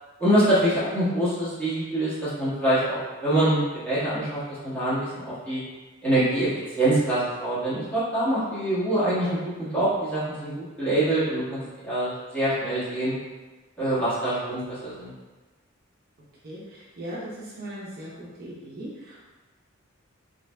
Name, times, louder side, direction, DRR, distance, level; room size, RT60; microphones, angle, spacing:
voice 1, 0.2-5.6 6.0-6.5 6.8-13.1 13.8-15.1, right 1 dB, 5° left, -13 dB, 1.4 m, -25 dB
voice 2, 16.4-18.1 18.4-19.2, right 1 dB, 45° right, -7 dB, 0.7 m, -38 dB
3.8 x 3.3 x 2.2 m, 1.3 s
head